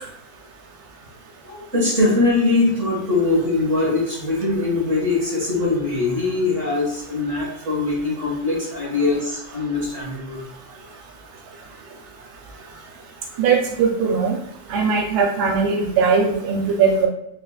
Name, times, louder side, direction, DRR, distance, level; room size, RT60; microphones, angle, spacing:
voice 1, 1.4-10.4, left 3 dB, 40° right, -6 dB, 1.7 m, -22 dB
voice 2, 13.4-14.4 14.7-17.1, right 5 dB, 85° right, -1 dB, 1.5 m, -19 dB
4.5 x 3.2 x 2.3 m, 0.78 s
omnidirectional pair, 2.1 m